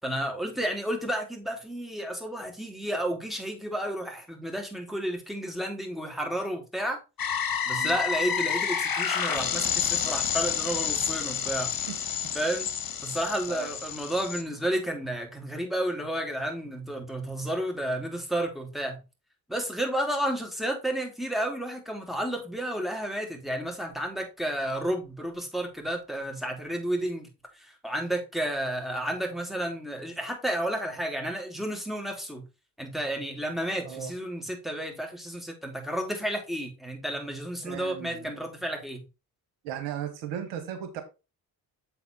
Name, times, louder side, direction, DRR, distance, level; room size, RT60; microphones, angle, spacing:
voice 1, 0.0-7.0 7.7-11.7 12.3-12.7 13.0-19.0 19.5-27.3 27.5-32.4 32.8-39.0, right 1 dB, ahead, 3.2 m, -31 dB
sound 1, 7.2-14.4, left 8 dB, 45° left, 1.5 m, -29 dB
voice 2, 37.6-38.3 39.6-41.0, right 10 dB, 85° right, 1.6 m, -36 dB
7.9 x 4.1 x 4.6 m
hypercardioid pair, 45°, 49 cm